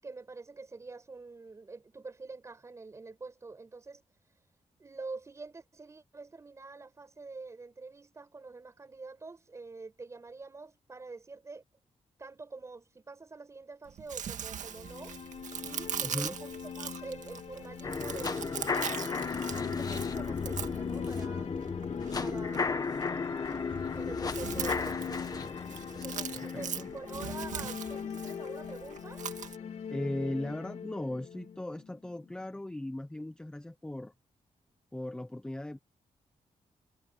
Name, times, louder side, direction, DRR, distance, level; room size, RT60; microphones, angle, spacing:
voice 1, 0.0-4.0 4.8-11.6 12.2-15.2 15.6-21.5 22.2-23.0 23.9-25.5 25.9-29.2, right 3 dB, 25° right, 5.6 m, -46 dB
Chewing mastication, 13.9-29.6, right 9 dB, 80° right, 1.8 m, -42 dB
sound 1, 14.4-32.4, left 7 dB, 65° left, 3.3 m, -41 dB
voice 2, 16.0-16.3 26.3-26.9 29.9-34.1 34.9-35.8, left 1 dB, 5° left, 0.7 m, -38 dB
sound 2, 17.8-27.9 28.3-28.4, left 4 dB, 30° left, 1.4 m, -35 dB
wide cardioid pair, 175°, 13 cm